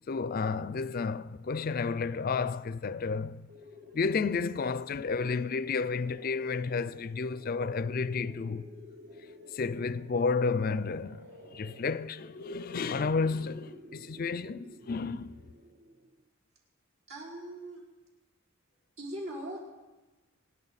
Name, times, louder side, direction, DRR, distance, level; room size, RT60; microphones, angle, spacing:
voice 1, 0.1-3.4 3.9-8.6 9.5-15.4, left 4 dB, 45° left, 0.4 m, -31 dB
sound 1, 3.5-16.3, left 1 dB, 50° right, 0.9 m, -51 dB
voice 2, 17.1-17.8 19.0-19.7, right 1 dB, 75° right, 5.3 m, -40 dB
26.5 x 11.0 x 4.1 m
head